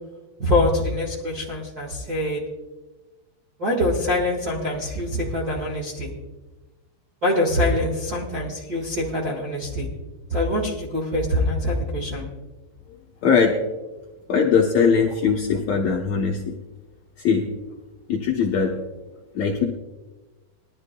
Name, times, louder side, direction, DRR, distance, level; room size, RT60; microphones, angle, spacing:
voice 1, 0.4-2.4 3.6-6.1 7.2-9.9 10.3-12.3, left 1 dB, 45° right, -5 dB, 1.2 m, -24 dB
voice 2, 13.2-13.6 14.3-16.6 17.2-17.5 18.1-18.7 19.3-19.6, left 6 dB, 85° left, -2 dB, 1.5 m, -20 dB
22.0 x 11.5 x 2.2 m, 1.2 s
omnidirectional pair, 4.6 m